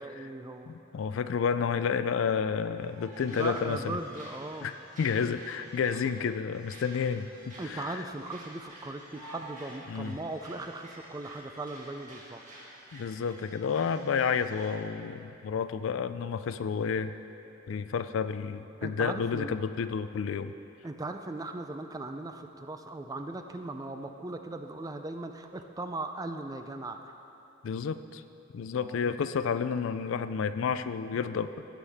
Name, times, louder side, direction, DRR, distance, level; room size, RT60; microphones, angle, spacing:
voice 1, 0.0-0.7 3.3-4.7 6.0-6.1 7.6-12.4 18.8-19.6 20.8-27.1 28.7-29.1, right 2 dB, 20° right, 6 dB, 0.4 m, -38 dB
voice 2, 0.7-4.0 4.6-8.0 9.9-10.1 12.9-17.1 17.7-20.5 27.6-28.2 28.5-31.7, left 6 dB, 70° left, 12 dB, 0.3 m, -30 dB
sound 1, 2.8-14.7, right 1 dB, 40° right, 1.9 m, -50 dB
16.0 x 7.3 x 3.5 m, 2.8 s
head